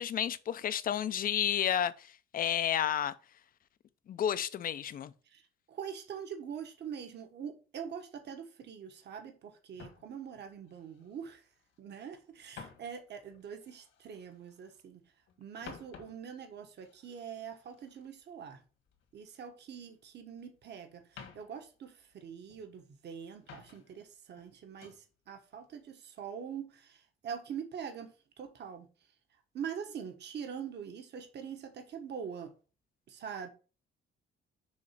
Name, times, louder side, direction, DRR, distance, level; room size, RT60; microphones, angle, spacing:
voice 1, 0.0-3.1 4.1-5.1, left 9 dB, 45° left, 0.5 m, -31 dB
voice 2, 5.7-11.4 11.8-15.0 15.4-18.6 19.1-25.0 25.3-28.1 28.4-28.9 29.5-32.5 33.1-33.5, right 7 dB, 55° right, 1.3 m, -43 dB
sound 1, 9.7-11.8 12.1-14.9 15.2-19.4 19.7-20.6 21.0-22.8 23.2-24.1 24.4-25.1 25.5-25.8, left 6 dB, 75° left, 1.8 m, -55 dB
6.4 x 3.2 x 5.8 m
cardioid pair, 125°, 21 cm